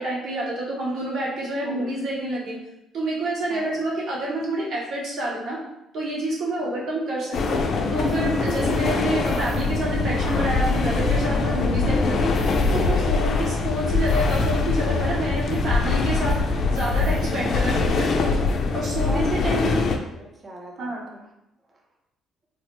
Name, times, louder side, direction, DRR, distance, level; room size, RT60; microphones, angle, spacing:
voice 1, 0.0-2.6 2.9-5.6 5.9-7.6 7.9-12.3 12.7-16.4 16.7-18.3 18.7-19.7 20.8-21.0, right 1 dB, 65° right, -4 dB, 1.0 m, -28 dB
voice 2, 6.6-6.9 19.0-21.3, right 1 dB, 40° right, -1 dB, 0.8 m, -39 dB
sound 1, 7.3-20.0, left 3 dB, 60° left, 0.4 m, -23 dB
3.1 x 2.0 x 3.0 m, 0.85 s
supercardioid pair, 65°, 0 cm